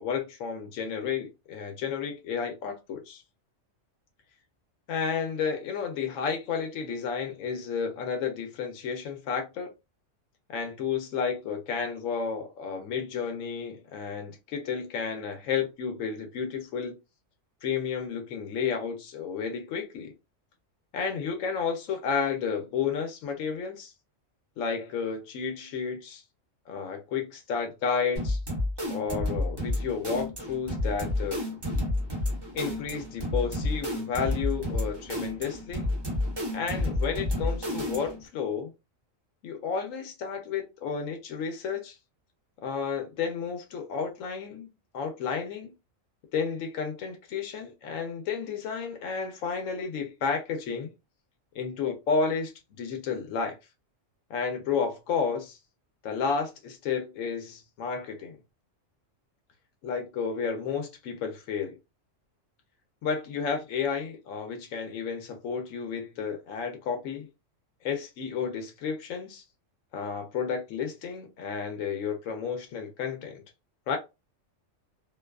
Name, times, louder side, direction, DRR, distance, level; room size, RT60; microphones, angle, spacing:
voice 1, 0.0-3.2 4.9-9.7 10.5-17.0 17.6-20.1 20.9-23.9 24.6-26.2 26.7-28.4 28.9-31.4 32.5-35.8 36.5-38.7 39.4-42.0 42.6-44.7 44.9-45.7 46.3-50.9 51.5-52.5 52.8-53.6 54.3-55.6 56.0-58.4 59.8-61.7 63.0-67.3 67.8-69.4 69.9-73.4 73.9-74.0, left 6 dB, 85° left, 1.0 m, -32 dB
sound 1, 28.2-38.3, left 1 dB, 25° right, 0.6 m, -30 dB
2.6 x 2.2 x 2.2 m
omnidirectional pair, 1.3 m